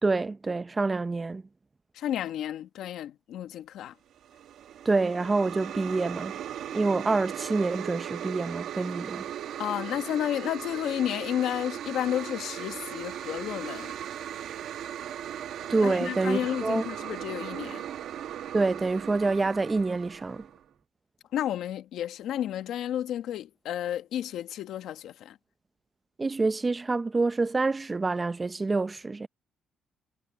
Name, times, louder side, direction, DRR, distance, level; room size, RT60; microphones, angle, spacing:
voice 1, 0.0-1.4 4.8-6.3 6.7-9.2 15.7-16.8 18.5-20.5 26.2-29.3, right 3 dB, 25° right, 0.7 m, -27 dB
voice 2, 1.9-3.9 9.6-13.9 15.8-17.8 21.3-25.4, left 11 dB, 80° left, 1.7 m, -32 dB
sound 1, 4.2-20.6, right 10 dB, 75° right, 1.3 m, -38 dB
cardioid pair, 90°, 0 cm